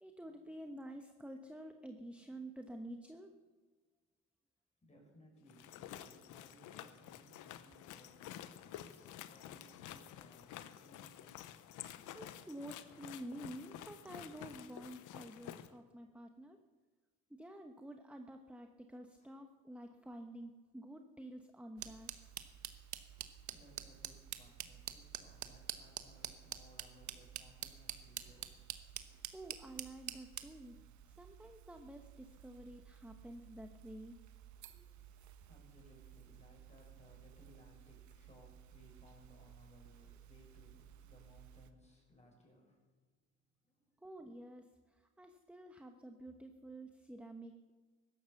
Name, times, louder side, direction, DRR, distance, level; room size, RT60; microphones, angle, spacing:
voice 1, 0.0-3.3 12.1-16.6 17.3-22.3 29.3-34.2 44.0-44.7 45.2-47.7, right 1 dB, 5° right, 5 dB, 1.1 m, -50 dB
voice 2, 4.8-11.6 19.2-19.4 19.9-20.0 23.1-28.8 34.7-42.9 43.6-44.1, equal, 20° left, 0 dB, 6.5 m, -64 dB
sound 1, 5.5-15.7, left 11 dB, 90° left, 0.9 m, -51 dB
sound 2, 21.8-41.7, right 11 dB, 70° right, 1.2 m, -50 dB
16.0 x 12.0 x 7.1 m, 1.4 s
cardioid pair, 90°, 30 cm